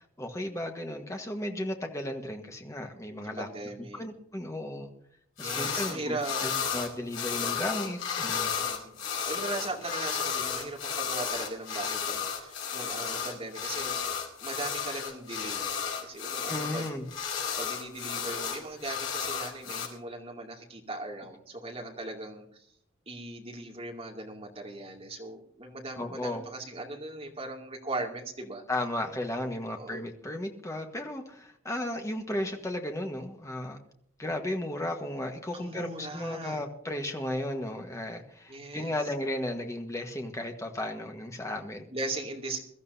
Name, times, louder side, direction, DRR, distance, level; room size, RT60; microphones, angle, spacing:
voice 1, 0.2-3.5 4.0-4.9 5.4-8.5 16.5-17.1 26.0-26.4 28.7-33.8 34.2-41.9, left 1 dB, 15° left, 4 dB, 1.4 m, -34 dB
voice 2, 3.4-4.0 5.4-6.5 8.5-9.0 9.2-14.0 14.4-16.9 17.6-22.6 23.1-28.6 29.8-30.0 35.5-36.6 38.5-38.9 41.9-42.6, right 2 dB, 30° right, 0 dB, 2.4 m, -38 dB
sound 1, 5.4-5.9 6.2-19.9, left 7 dB, 70° left, 4.5 m, -33 dB
23.0 x 13.5 x 2.7 m, 0.66 s
head